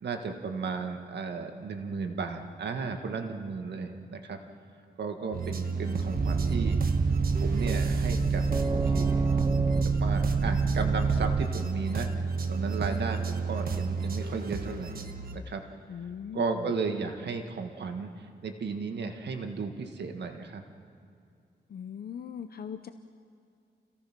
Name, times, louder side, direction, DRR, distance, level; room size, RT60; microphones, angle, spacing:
voice 1, 0.0-4.4 5.0-6.8 7.4-9.3 10.0-15.0 15.3-15.6 16.3-20.6, right 4 dB, 75° right, 5 dB, 1.7 m, -34 dB
sound 1, 5.3-15.4, right 4 dB, 55° right, 1.4 m, -33 dB
sound 2, 6.1-11.5, right 4 dB, 20° right, 0.4 m, -26 dB
voice 2, 15.9-16.7 21.7-22.9, left 8 dB, 60° left, 8 dB, 0.7 m, -39 dB
29.0 x 16.5 x 6.1 m, 2.5 s
wide cardioid pair, 150°, 18 cm